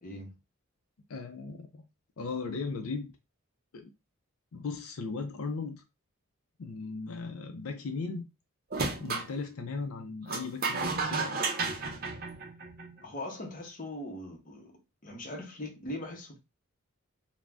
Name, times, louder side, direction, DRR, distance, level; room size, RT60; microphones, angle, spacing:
voice 1, 0.0-0.3 13.0-16.4, left 1 dB, 35° left, 0.7 m, -41 dB
voice 2, 1.1-1.8 2.2-3.2 3.7-3.9 4.5-5.8 6.6-8.3 9.0-11.4, left 4 dB, 80° left, 0.5 m, -37 dB
sound 1, 8.7-9.3 10.3-13.0, right 4 dB, 45° right, 0.5 m, -32 dB
2.5 x 2.1 x 3.3 m
head